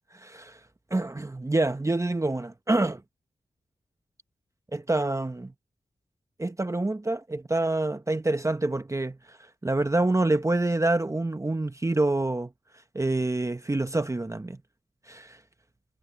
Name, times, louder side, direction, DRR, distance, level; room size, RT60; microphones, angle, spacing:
voice 1, 0.1-0.6 0.9-3.0 4.7-5.5 6.4-9.4 9.6-12.5 12.9-14.6 15.1-15.4, right 2 dB, 20° right, 0.9 m, -27 dB
cardioid pair, 50°, 14 cm